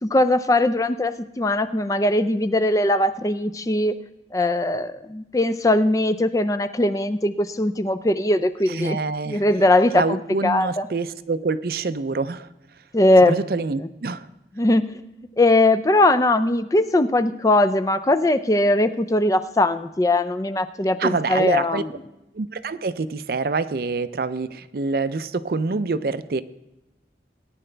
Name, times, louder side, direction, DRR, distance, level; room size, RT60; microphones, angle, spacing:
voice 1, 0.0-4.0 4.3-9.0 9.3-10.9 12.9-13.4 13.8-13.9 14.6-14.9 15.4-21.9, left 1 dB, 20° left, 11 dB, 0.4 m, -20 dB
voice 2, 8.7-9.4 9.9-12.5 13.3-14.2 21.0-21.8 22.3-26.4, right 4 dB, 55° right, 13 dB, 0.5 m, -26 dB
18.0 x 9.9 x 3.3 m, 0.92 s
head